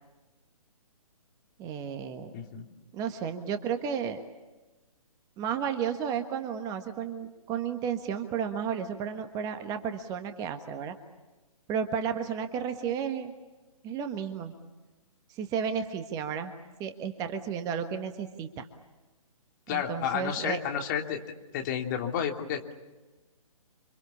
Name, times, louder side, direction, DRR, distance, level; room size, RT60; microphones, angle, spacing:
voice 1, 1.6-2.3 2.9-4.2 5.4-10.9 11.7-13.3 13.8-14.5 15.3-16.5 16.8-18.7 19.7-20.6, right 7 dB, 20° right, 7 dB, 1.5 m, -33 dB
voice 2, 2.3-2.6 19.7-21.2 21.5-22.7, left 8 dB, 35° left, 3 dB, 3.0 m, -31 dB
29.0 x 26.0 x 7.1 m, 1.2 s
figure-of-eight pair, 135°, 18 cm